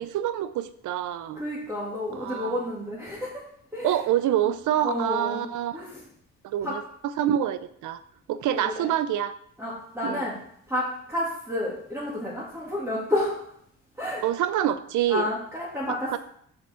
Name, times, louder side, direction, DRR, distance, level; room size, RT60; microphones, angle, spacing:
voice 1, 0.0-1.4 2.1-2.6 3.8-5.8 6.4-8.0 8.3-9.3 10.0-10.3 14.2-15.3 15.9-16.2, right 11 dB, 75° right, 14 dB, 0.7 m, -27 dB
voice 2, 1.4-3.3 3.7-3.9 4.8-5.4 5.7-6.0 6.6-6.7 8.6-8.9 9.6-10.3 10.7-10.8 11.1-13.4 14.0-14.2 15.1-16.2, left 1 dB, 10° right, -6 dB, 2.4 m, -30 dB
6.6 x 5.9 x 4.5 m, 0.68 s
cardioid pair, 90°, 30 cm